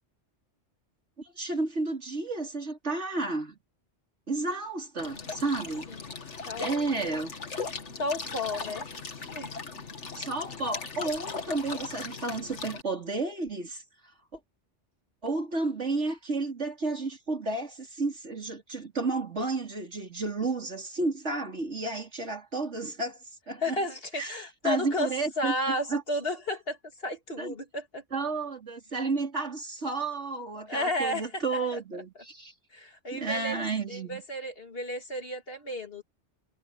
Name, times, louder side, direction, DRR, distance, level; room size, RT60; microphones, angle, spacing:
voice 1, 1.2-3.6 4.3-5.9 6.6-7.3 10.2-13.8 14.3-14.4 15.2-23.8 24.1-26.0 27.4-27.5 28.1-32.5 33.1-34.2, right 3 dB, 75° right, 4.2 m, -32 dB
sound 1, 5.0-12.8, left 4 dB, 75° left, 2.2 m, -38 dB
voice 2, 5.9-6.2 6.4-7.2 8.0-8.9 9.3-9.6 23.6-25.1 25.4-28.0 30.7-31.4 31.7-31.8 32.7-36.0, left 1 dB, 55° left, 3.1 m, -33 dB
omnidirectional pair, 1.2 m